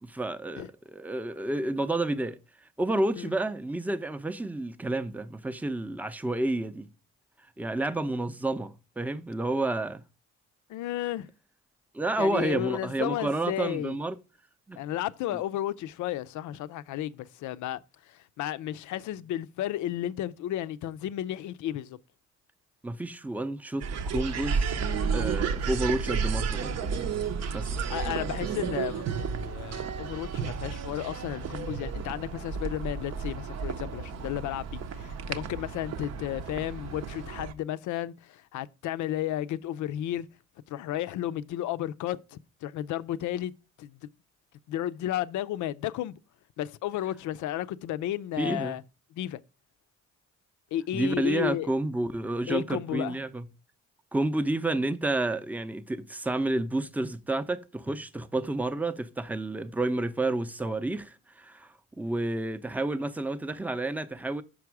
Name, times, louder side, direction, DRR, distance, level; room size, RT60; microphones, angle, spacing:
voice 1, 0.0-2.4 2.8-6.9 7.6-10.0 11.9-14.2 14.7-14.8 22.8-24.8 25.1-27.1 27.5-27.9 48.4-48.8 50.9-53.5 54.1-64.4, right 2 dB, 5° right, 0.5 m, -30 dB
voice 2, 10.7-11.3 12.2-14.0 14.8-17.8 18.1-22.0 27.9-40.3 40.7-43.5 43.8-44.0 44.7-46.1 46.6-48.8 49.2-49.4 50.7-51.7 52.5-53.2, left 12 dB, 75° left, 0.5 m, -33 dB
sound 1, 23.8-37.5, right 6 dB, 60° right, 0.7 m, -32 dB
6.2 x 4.8 x 4.6 m
cardioid pair, 90°, 30 cm